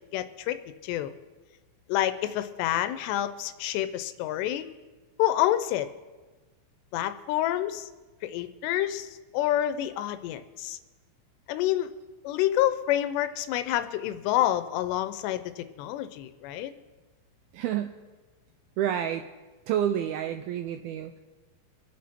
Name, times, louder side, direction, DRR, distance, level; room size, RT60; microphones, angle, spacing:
voice 1, 0.1-0.6 0.8-1.1 1.9-4.7 5.2-5.9 6.9-7.9 8.2-10.8 11.5-11.9 12.2-16.8, left 13 dB, 85° left, 11 dB, 2.8 m, -28 dB
voice 2, 17.5-18.0 18.8-19.3 19.7-21.2, right 10 dB, 90° right, 8 dB, 2.2 m, -29 dB
25.5 x 8.5 x 4.4 m, 1.3 s
omnidirectional pair, 4.9 m